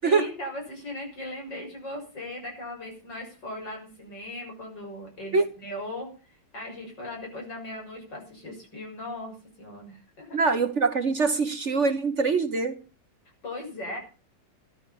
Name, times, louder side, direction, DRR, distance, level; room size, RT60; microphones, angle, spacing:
voice 1, 0.0-6.1 6.5-10.4 13.4-14.0, left 1 dB, 75° left, 7.2 m, -38 dB
voice 2, 10.3-12.8, right 4 dB, 45° right, 1.4 m, -23 dB
13.5 x 11.5 x 7.1 m
omnidirectional pair, 1.9 m